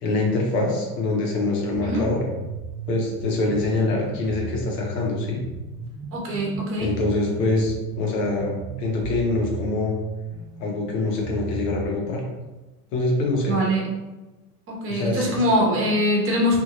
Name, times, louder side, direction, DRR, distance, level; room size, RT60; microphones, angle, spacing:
voice 1, 0.0-2.2 2.9-5.4 6.8-9.9 10.6-12.2 12.9-13.6 14.9-15.4, left 2 dB, 80° left, -1 dB, 1.1 m, -24 dB
sound 1, 1.7-11.9, right 4 dB, 85° right, 0.8 m, -35 dB
voice 2, 6.1-7.0 13.5-13.9 14.7-16.6, equal, 25° right, -2 dB, 1.0 m, -23 dB
2.8 x 2.6 x 2.9 m, 1.1 s
supercardioid pair, 120°, 46 cm